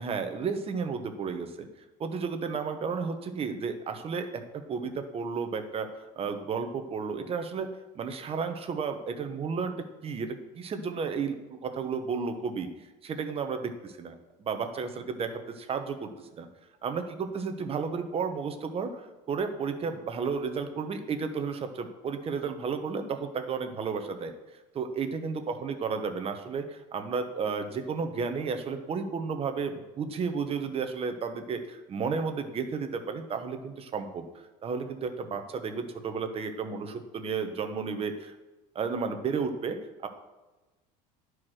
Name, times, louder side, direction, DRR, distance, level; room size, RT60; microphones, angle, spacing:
voice 1, 0.0-1.7 2.0-7.7 7.9-9.7 10.0-12.7 13.0-16.1 16.4-16.5 16.8-24.3 24.7-34.2 34.6-38.3 38.7-40.1, right 5 dB, 30° right, 7 dB, 1.0 m, -33 dB
10.5 x 4.8 x 6.3 m, 1.1 s
cardioid pair, 125°, 19 cm